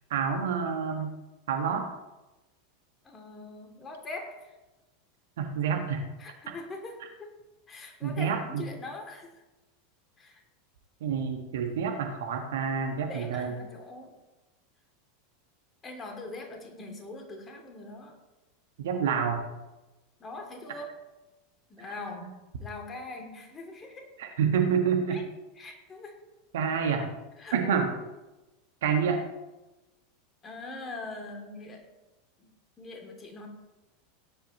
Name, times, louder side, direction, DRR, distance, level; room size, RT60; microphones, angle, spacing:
voice 1, 0.1-1.1 1.5-1.9 5.4-6.1 8.0-8.7 11.0-13.5 18.8-19.4 22.2-22.3 24.2-25.2 26.5-27.1 27.5-27.9 28.8-29.2, right 6 dB, 65° right, 4 dB, 1.7 m, -28 dB
voice 2, 3.0-4.5 6.2-7.4 7.7-9.3 10.2-10.4 13.1-14.1 15.8-18.2 20.2-20.9 21.7-24.1 25.1-25.2 25.6-26.2 27.4-27.9 30.4-31.8 32.4-32.5 32.8-33.5, left 2 dB, 25° left, 2 dB, 2.8 m, -42 dB
17.5 x 10.5 x 3.1 m, 1.1 s
figure-of-eight pair, 85°, 0 cm